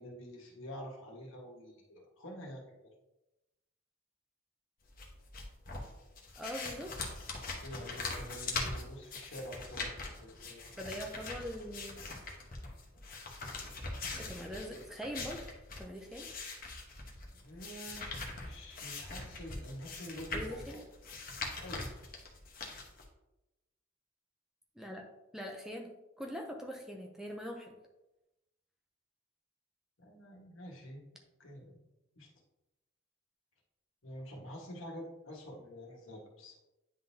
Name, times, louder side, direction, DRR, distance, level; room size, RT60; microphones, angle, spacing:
voice 1, 0.0-2.7 7.6-10.6 17.3-18.1 18.4-20.8 21.4-21.9 30.0-31.0 31.4-31.9 32.1-32.3 34.0-36.6, equal, 80° left, -1 dB, 1.5 m, -47 dB
sound 1, 4.9-23.0, left 3 dB, 45° left, 1.0 m, -42 dB
voice 2, 6.4-6.9 10.8-12.0 14.2-15.5 15.8-16.3 20.3-20.8 24.8-25.0 25.3-25.9 26.2-27.8, equal, ahead, 1 dB, 0.6 m, -42 dB
9.5 x 3.8 x 2.8 m, 0.96 s
head